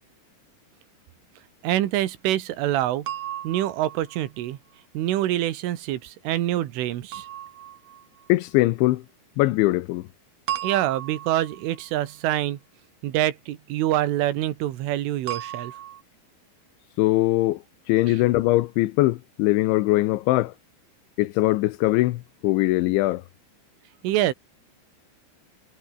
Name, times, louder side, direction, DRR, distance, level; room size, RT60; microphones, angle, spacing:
voice 1, 1.6-3.1 3.4-4.6 5.0-7.3 10.6-12.6 13.0-15.7 18.1-18.3 24.0-24.3, right 14 dB, 85° right, 4.2 m, -25 dB
sound 1, 3.1-4.5 7.1-8.3 10.5-11.9 15.3-16.0, right 12 dB, 60° right, 2.4 m, -35 dB
voice 2, 8.3-9.0 9.4-10.1 17.0-17.6 17.9-20.5 21.2-23.2, left 18 dB, 85° left, 3.1 m, -21 dB
omnidirectional pair, 5.5 m